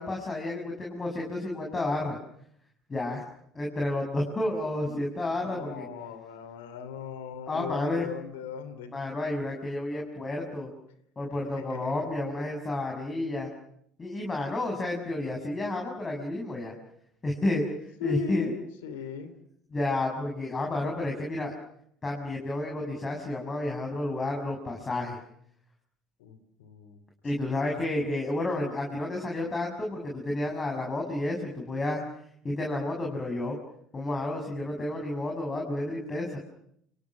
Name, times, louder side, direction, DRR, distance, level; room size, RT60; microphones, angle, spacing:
voice 1, 0.0-2.2 2.9-3.2 3.5-5.8 7.5-8.1 8.9-10.7 11.1-13.5 14.0-16.7 17.2-17.6 18.0-18.5 19.7-21.5 22.0-25.2 27.2-32.0 32.4-33.6 33.9-36.4, left 2 dB, 25° left, 0 dB, 6.8 m, -31 dB
voice 2, 5.4-8.9 11.5-12.2 18.0-19.3 26.2-27.0, left 7 dB, 70° left, 13 dB, 3.0 m, -38 dB
29.5 x 26.5 x 6.3 m, 0.71 s
figure-of-eight pair, 60°, 0 cm